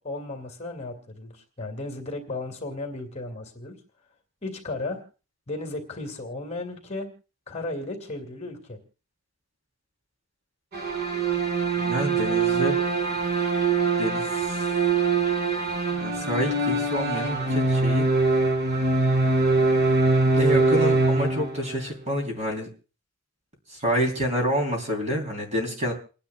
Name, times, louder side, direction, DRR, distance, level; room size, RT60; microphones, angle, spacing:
voice 1, 0.0-3.7 4.4-5.0 5.5-7.1 7.5-8.8, left 2 dB, 30° left, 5 dB, 2.2 m, -34 dB
sound 1, 10.7-21.9, right 3 dB, 50° right, 2.3 m, -23 dB
voice 2, 11.8-12.8 14.0-14.5 16.0-18.1 20.3-22.7 23.8-25.9, equal, 30° right, 3 dB, 3.4 m, -28 dB
29.5 x 10.0 x 2.3 m, 0.34 s
head